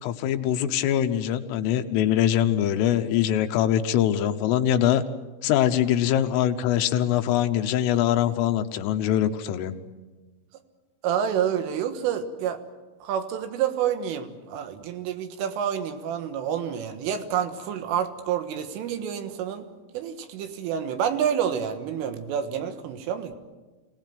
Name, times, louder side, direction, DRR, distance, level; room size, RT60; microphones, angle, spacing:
voice 1, 0.0-5.0 5.4-9.7, left 11 dB, 85° left, 8 dB, 3.7 m, -23 dB
voice 2, 11.0-12.6 13.0-19.7 19.9-23.3, right 8 dB, 80° right, 8 dB, 4.0 m, -28 dB
25.5 x 18.0 x 9.2 m, 1.3 s
omnidirectional pair, 5.7 m